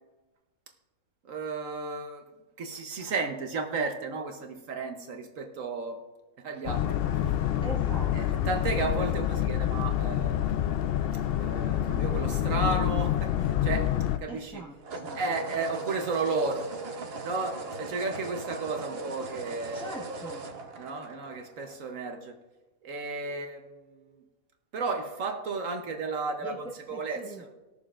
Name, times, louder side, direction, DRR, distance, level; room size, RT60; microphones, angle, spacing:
voice 1, 1.2-2.3 2.6-6.0 6.4-7.0 8.1-10.4 11.4-13.9 14.2-14.6 15.2-16.8 17.0-19.9 20.8-22.4 22.8-24.2 24.7-26.5 26.9-27.2, right 3 dB, 70° right, 5 dB, 1.3 m, -33 dB
Boat Water vehicle, 6.7-14.2, left 11 dB, 70° left, 0.5 m, -27 dB
voice 2, 7.6-8.5 14.3-15.2 19.7-20.4 26.4-26.6 26.9-27.4, right 2 dB, 5° left, -3 dB, 1.4 m, -41 dB
sound 1, 10.6-10.9 14.8-21.9, right 3 dB, 50° right, 1.0 m, -39 dB
20.5 x 6.8 x 2.5 m, 1.2 s
omnidirectional pair, 1.5 m